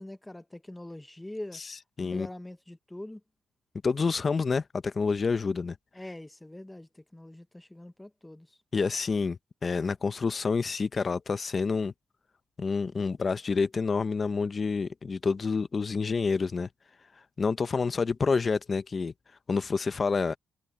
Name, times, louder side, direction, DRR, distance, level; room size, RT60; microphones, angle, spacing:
voice 1, 0.0-1.6 2.0-3.2 5.9-8.6, left 1 dB, 10° left, 1.0 m, -43 dB
voice 2, 3.8-5.8 8.7-11.9 12.6-16.7 17.4-19.1 19.5-20.4, left 4 dB, 30° left, 0.7 m, -28 dB
cardioid pair, 140°, 0 cm